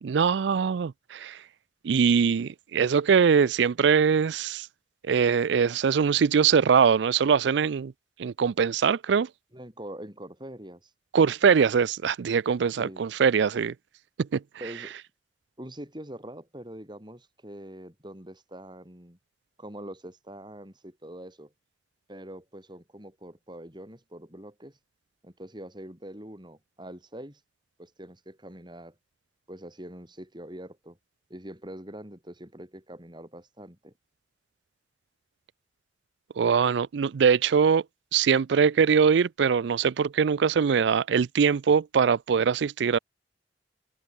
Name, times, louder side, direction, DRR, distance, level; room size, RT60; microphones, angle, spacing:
voice 1, 0.0-1.4 1.8-4.7 5.0-7.9 8.2-9.3 11.1-13.7 14.2-14.4 36.4-37.8 38.1-43.0, right 6 dB, 70° right, 0.4 m, -22 dB
voice 2, 9.5-10.9 12.6-13.0 14.6-14.9 15.6-19.2 19.6-21.5 22.1-24.8 25.2-27.4 27.8-28.9 29.5-31.0 31.3-33.9, right 1 dB, 25° right, 6.3 m, -43 dB
head